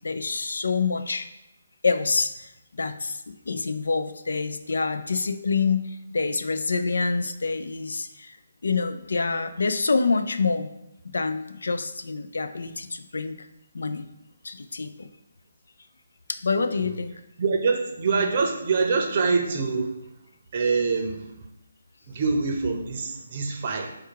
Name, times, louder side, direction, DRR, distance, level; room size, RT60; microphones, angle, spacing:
voice 1, 0.0-1.3 1.8-8.4 8.6-10.7 11.0-13.5 13.7-14.1 14.4-15.1 16.3-17.1 18.1-18.3, left 4 dB, 80° left, 10 dB, 0.4 m, -27 dB
voice 2, 17.4-19.9 20.5-21.3 22.1-23.9, right 4 dB, 35° right, 3 dB, 0.6 m, -25 dB
4.7 x 2.2 x 4.7 m, 0.86 s
hypercardioid pair, 165°, 0 cm